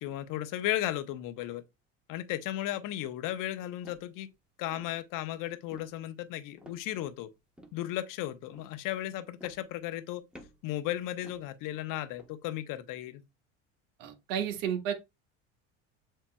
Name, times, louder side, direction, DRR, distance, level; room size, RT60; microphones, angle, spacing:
voice 1, 0.0-1.6 2.1-4.3 4.6-7.3 7.7-10.2 10.6-13.2, left 13 dB, 55° left, 0.8 m, -35 dB
sound 1, 3.8-4.1 4.7-5.0 5.7-6.0 6.6-7.2 7.6-7.8 8.5-8.8 9.4-10.0 10.3-10.7 11.2-11.5 12.1-12.4, equal, ahead, 1.1 m, -53 dB
voice 2, 14.0-14.9, right 9 dB, 75° right, 1.3 m, -32 dB
7.4 x 2.9 x 2.2 m
hypercardioid pair, 85°, 38 cm